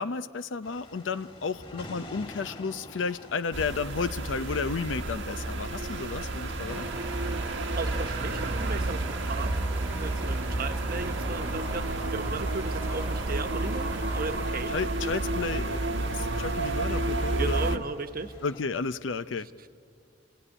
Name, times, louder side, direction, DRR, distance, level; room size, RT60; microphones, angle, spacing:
voice 1, 0.0-6.9 14.7-15.8 16.1-17.8 18.4-19.5, left 4 dB, 90° left, 12 dB, 0.6 m, -32 dB
sound 1, 0.6-18.7, left 1 dB, 30° left, 2.4 m, -50 dB
sound 2, 3.5-17.8, right 2 dB, 80° right, 1.3 m, -30 dB
Wind, 6.7-14.5, right 1 dB, 10° right, 1.0 m, -43 dB
voice 2, 7.7-9.6 9.9-14.8 15.9-16.7 17.4-18.4 19.6-19.7, right 3 dB, 50° right, 8 dB, 1.1 m, -36 dB
27.5 x 17.5 x 10.0 m, 2.4 s
head